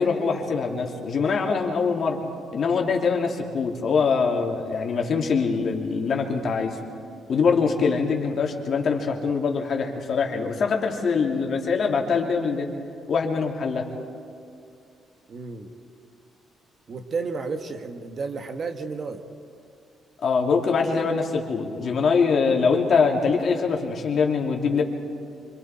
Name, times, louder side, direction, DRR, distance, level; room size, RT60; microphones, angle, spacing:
voice 1, 0.0-2.2 2.5-6.8 7.3-12.7 13.1-13.8 20.2-24.8, left 5 dB, 55° left, 1 dB, 2.8 m, -23 dB
voice 2, 15.3-15.7 16.9-19.2, right 4 dB, 50° right, 6 dB, 1.6 m, -32 dB
25.5 x 25.0 x 4.4 m, 2.4 s
cardioid pair, 90°, 0 cm